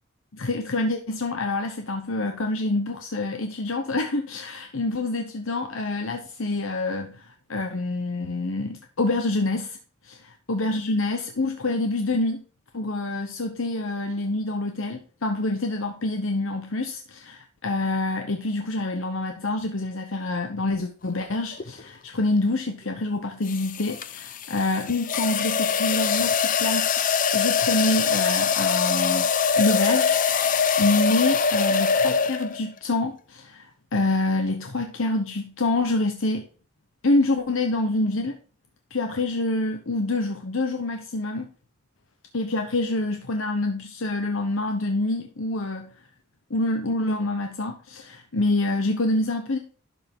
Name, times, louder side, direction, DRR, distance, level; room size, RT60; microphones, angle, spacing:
voice 1, 0.3-9.8 10.0-12.4 12.7-26.9 27.3-36.5 37.0-38.4 38.9-41.5 42.3-45.9 46.5-49.6, left 2 dB, 75° left, 1.0 m, -26 dB
sound 1, 21.5-21.8 23.5-32.7, left 6 dB, 40° left, 0.5 m, -23 dB
11.5 x 6.0 x 3.7 m
head